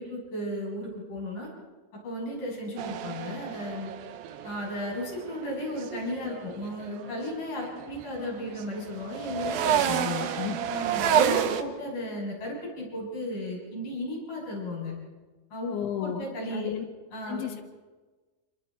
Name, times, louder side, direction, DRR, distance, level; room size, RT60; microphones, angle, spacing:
voice 1, 0.0-1.5 2.0-3.9 4.4-10.1 10.7-14.9 15.5-16.7 17.1-17.4, left 1 dB, 45° left, -4 dB, 8.8 m, -35 dB
sound 1, 2.8-7.2 7.6-11.6, right 9 dB, 80° right, 2.1 m, -30 dB
voice 2, 9.9-10.6 15.7-16.3 16.5-16.8 17.3-17.6, left 10 dB, 75° left, 4 dB, 3.9 m, -33 dB
26.5 x 23.0 x 4.5 m, 1.3 s
omnidirectional pair, 5.4 m